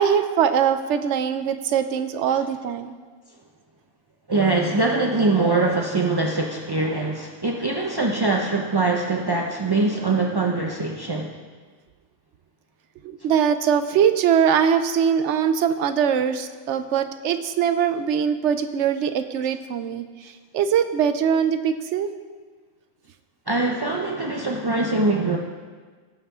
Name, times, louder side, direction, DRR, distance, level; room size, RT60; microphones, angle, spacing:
voice 1, 0.0-2.9 13.0-22.1, right 8 dB, 65° right, 10 dB, 0.9 m, -22 dB
voice 2, 4.3-11.3 23.5-25.4, right 3 dB, 40° right, 0 dB, 0.3 m, -23 dB
17.0 x 7.3 x 3.7 m, 1.5 s
omnidirectional pair, 1.4 m